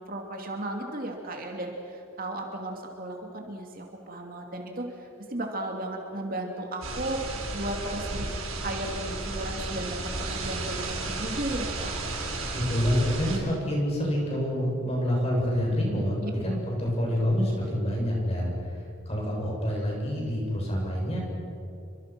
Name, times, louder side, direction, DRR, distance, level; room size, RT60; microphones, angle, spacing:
voice 1, 0.1-7.2 7.5-12.0 16.2-16.3, right 1 dB, 40° right, 1 dB, 2.8 m, -35 dB
sound 1, 6.8-13.4, right 2 dB, 80° right, 7.0 m, -33 dB
voice 2, 12.5-18.5 19.1-21.2, equal, 30° left, -2 dB, 7.5 m, -27 dB
29.5 x 24.5 x 6.2 m, 2.6 s
head